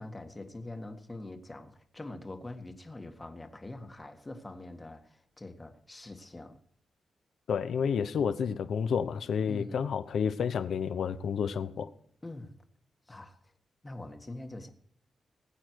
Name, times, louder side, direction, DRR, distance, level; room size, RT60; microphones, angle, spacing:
voice 1, 0.0-6.6 9.5-9.8 12.2-12.5 13.1-13.4 13.8-14.7, left 2 dB, 20° left, 5 dB, 1.7 m, -44 dB
voice 2, 7.5-11.9, left 7 dB, 75° left, 11 dB, 0.9 m, -30 dB
20.5 x 8.8 x 4.7 m, 0.64 s
cardioid pair, 110°, 0 cm